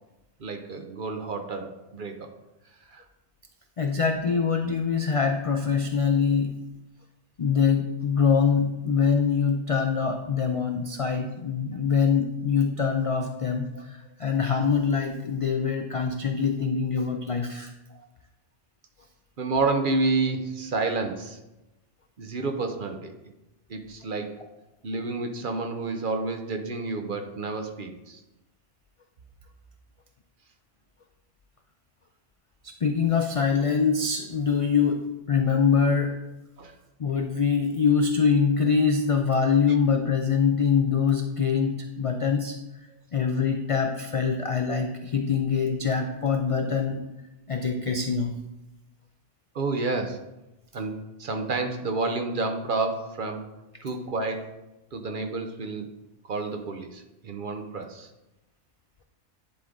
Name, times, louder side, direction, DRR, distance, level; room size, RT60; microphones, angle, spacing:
voice 1, 0.4-2.3 2.9-3.0 11.7-11.8 13.7-13.8 14.2-14.3 17.9-18.0 19.4-21.4 22.2-23.1 23.7-24.4 24.8-28.2 36.6-36.7 49.5-50.2 50.7-53.5 53.8-54.5 54.9-55.9 56.2-58.1, right 3 dB, 50° right, 5 dB, 0.8 m, -30 dB
voice 2, 3.8-6.5 7.4-17.7 32.8-35.0 35.3-36.1 37.0-42.6 43.1-47.0 47.5-48.3, left 6 dB, 60° left, 4 dB, 0.3 m, -24 dB
10.0 x 3.8 x 3.7 m, 0.97 s
omnidirectional pair, 1.2 m